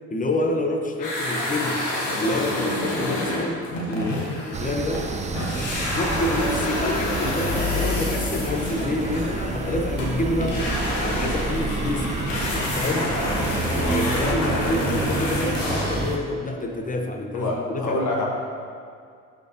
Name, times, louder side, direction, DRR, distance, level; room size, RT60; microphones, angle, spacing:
voice 1, 0.1-1.8 2.2-5.1 5.9-12.1 12.5-13.1 13.8-18.0, left 1 dB, 20° left, 3 dB, 0.9 m, -28 dB
sound 1, 1.0-5.1 5.3-16.1, left 1 dB, 90° left, 1.2 m, -28 dB
sound 2, 4.5-16.2, right 2 dB, 20° right, 0.5 m, -29 dB
voice 2, 17.3-18.2, left 2 dB, 50° left, -2 dB, 1.5 m, -26 dB
11.5 x 4.5 x 2.8 m, 2.3 s
hypercardioid pair, 65°, 37 cm